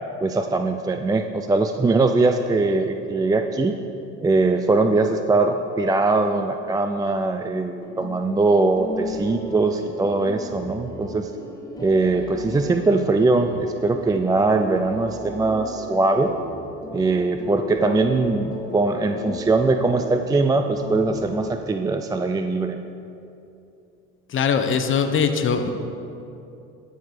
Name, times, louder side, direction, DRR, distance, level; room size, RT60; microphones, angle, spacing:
voice 1, 0.2-3.8 4.2-11.3 11.8-16.3 16.9-22.8, right 3 dB, 10° right, 6 dB, 0.4 m, -21 dB
sound 1, 7.8-21.5, left 1 dB, 10° left, 1.4 m, -36 dB
voice 2, 24.3-25.7, left 6 dB, 40° left, 7 dB, 1.0 m, -21 dB
14.0 x 5.0 x 6.2 m, 2.7 s
supercardioid pair, 85°, 32 cm